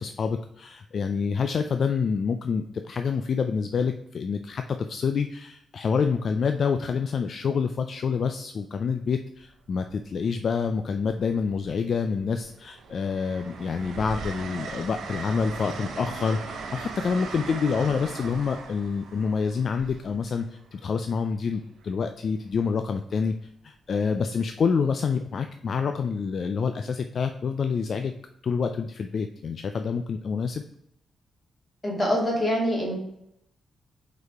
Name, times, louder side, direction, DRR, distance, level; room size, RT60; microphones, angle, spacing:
voice 1, 0.0-23.3 23.6-28.1 28.4-30.6, left 5 dB, 45° left, 7 dB, 0.3 m, -27 dB
Train, 9.4-9.7 11.0-11.7 12.1-20.9 22.5-22.7, right 4 dB, 75° right, 0.8 m, -39 dB
voice 2, 31.8-33.0, equal, 20° left, -3 dB, 2.2 m, -25 dB
5.3 x 4.1 x 4.6 m, 0.77 s
wide cardioid pair, 155°, 0 cm